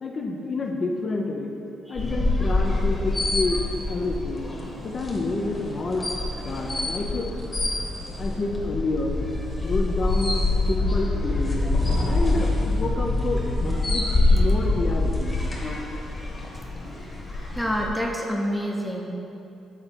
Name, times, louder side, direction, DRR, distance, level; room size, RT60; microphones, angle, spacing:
voice 1, 0.0-1.5 1.9-3.6 3.9-4.5 4.8-6.1 6.4-7.3 8.2-9.2 9.6-11.7 12.1-13.5 13.9-15.4, left 3 dB, 40° left, 0 dB, 0.6 m, -28 dB
sound 1, 2.0-17.9, left 2 dB, 25° left, 1.3 m, -25 dB
voice 2, 17.5-19.0, equal, ahead, -1 dB, 0.8 m, -27 dB
7.4 x 3.8 x 4.5 m, 2.7 s
cardioid pair, 90°, 0 cm